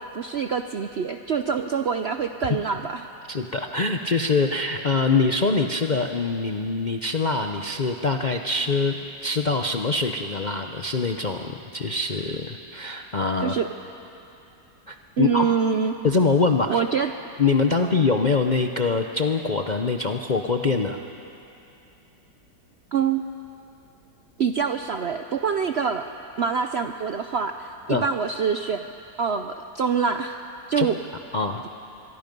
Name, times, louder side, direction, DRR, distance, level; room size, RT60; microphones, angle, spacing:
voice 1, 0.0-3.1 13.4-13.7 15.2-16.0 16.7-17.1 22.9-23.2 24.4-26.1 26.4-28.8 29.2-31.0, right 6 dB, 65° right, 7 dB, 0.6 m, -25 dB
voice 2, 3.3-13.6 14.9-15.5 16.0-16.8 17.4-21.0 27.9-28.0 30.8-30.9 31.3-31.6, left 4 dB, 50° left, 3 dB, 0.5 m, -24 dB
25.0 x 22.5 x 5.3 m, 2.8 s
omnidirectional pair, 1.8 m